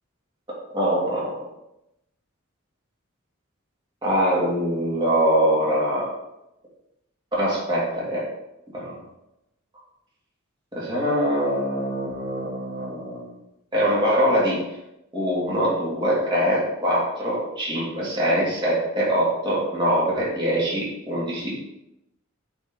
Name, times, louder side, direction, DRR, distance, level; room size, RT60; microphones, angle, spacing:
voice 1, 0.7-1.3 4.0-6.1 7.4-8.3 8.7-8.9 10.7-13.3 13.7-14.6 15.1-21.6, equal, 25° right, -6 dB, 2.8 m, -23 dB
8.7 x 4.5 x 3.9 m, 0.88 s
head